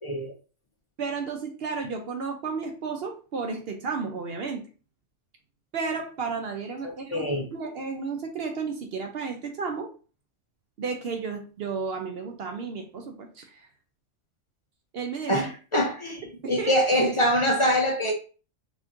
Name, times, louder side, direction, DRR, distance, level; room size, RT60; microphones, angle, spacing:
voice 1, 0.0-0.3 6.8-7.5 15.3-18.1, equal, 45° left, 0 dB, 0.4 m, -24 dB
voice 2, 1.0-4.6 5.7-7.3 7.5-9.9 10.8-13.7 14.9-15.3 16.4-16.7, right 5 dB, 60° right, 4 dB, 0.7 m, -32 dB
4.1 x 3.0 x 2.5 m, 0.36 s
omnidirectional pair, 1.3 m